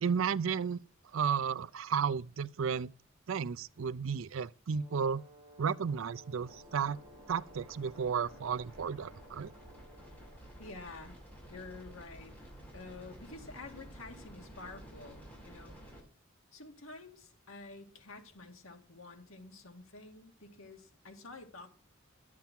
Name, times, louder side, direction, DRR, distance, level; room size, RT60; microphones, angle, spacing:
voice 1, 0.0-0.8 1.1-2.9 3.3-5.2 5.6-7.0 7.3-9.5, right 6 dB, 70° right, 0.5 m, -33 dB
Brass instrument, 4.7-10.7, left 1 dB, 25° right, 1.8 m, -58 dB
sound 1, 6.4-16.0, equal, 10° left, 7.6 m, -52 dB
voice 2, 10.6-11.2 11.5-12.4 12.7-15.8 16.5-21.7, left 3 dB, 75° left, 2.0 m, -49 dB
11.5 x 7.4 x 6.0 m
head